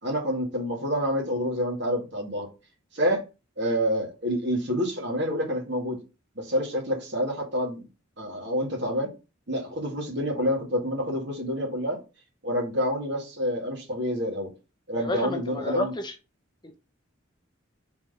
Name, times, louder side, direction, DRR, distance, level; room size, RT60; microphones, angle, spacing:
voice 1, 0.0-2.5 2.9-3.2 3.6-6.0 6.4-7.9 8.2-9.1 9.5-12.0 12.4-14.5 14.9-15.9, equal, 55° right, 0 dB, 2.2 m, -28 dB
voice 2, 15.0-16.1, left 1 dB, 20° left, 5 dB, 0.8 m, -30 dB
4.7 x 4.0 x 5.2 m, 0.30 s
head